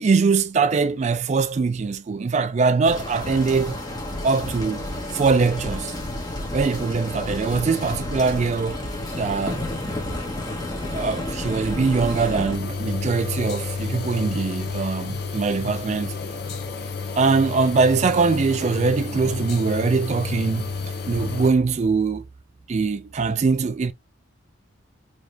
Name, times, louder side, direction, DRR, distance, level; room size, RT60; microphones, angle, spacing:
voice 1, 0.0-3.8 4.2-4.9 5.1-6.0 6.5-8.8 9.2-9.6 10.9-16.2 17.2-20.7 21.1-22.2 22.7-23.9, right 4 dB, 35° right, 0.3 m, -22 dB
sound 1, 2.8-12.6, left 1 dB, 20° left, 1.0 m, -31 dB
sound 2, 12.5-21.5, left 4 dB, 50° left, 0.9 m, -31 dB
4.8 x 2.8 x 2.2 m
head